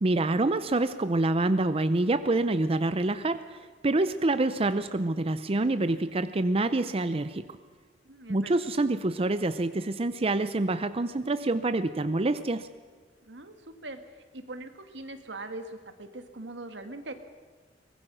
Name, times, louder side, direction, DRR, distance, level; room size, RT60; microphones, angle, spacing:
voice 1, 0.0-3.4 3.8-7.5 8.3-12.7, right 2 dB, 35° right, 11 dB, 0.6 m, -26 dB
voice 2, 8.0-8.7 13.2-14.0 14.3-17.1, right 2 dB, 85° right, 7 dB, 1.9 m, -41 dB
23.0 x 20.0 x 6.2 m, 1.5 s
head